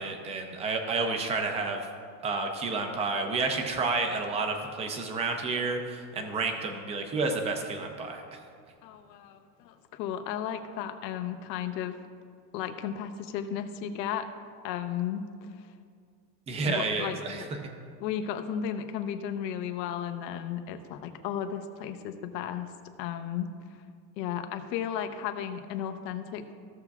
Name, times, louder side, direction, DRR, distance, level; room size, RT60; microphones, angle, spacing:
voice 1, 0.0-1.9 2.2-8.2 16.5-17.4, right 3 dB, 15° right, 4 dB, 0.4 m, -30 dB
voice 2, 8.8-12.0 12.5-14.3 14.6-15.7 16.6-17.4 18.0-22.7 23.0-23.5 24.2-26.5, left 9 dB, 85° left, 7 dB, 0.9 m, -34 dB
15.5 x 6.9 x 2.3 m, 2.2 s
supercardioid pair, 155°, 48 cm